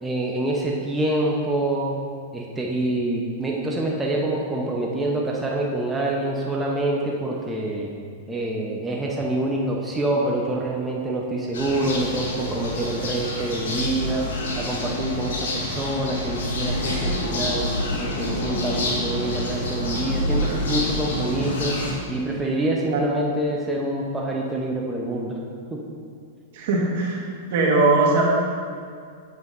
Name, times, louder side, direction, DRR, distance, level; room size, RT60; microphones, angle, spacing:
voice 1, 0.0-2.0 2.3-7.9 8.3-14.2 14.6-17.6 18.0-21.7 22.1-25.4, right 1 dB, 10° right, -2 dB, 0.8 m, -26 dB
sound 1, 11.5-21.9, left 1 dB, 75° left, 1.7 m, -27 dB
voice 2, 26.5-27.2 27.5-28.2, right 3 dB, 65° right, -2 dB, 1.5 m, -20 dB
8.3 x 7.0 x 2.6 m, 2.2 s
hypercardioid pair, 120°, 0 cm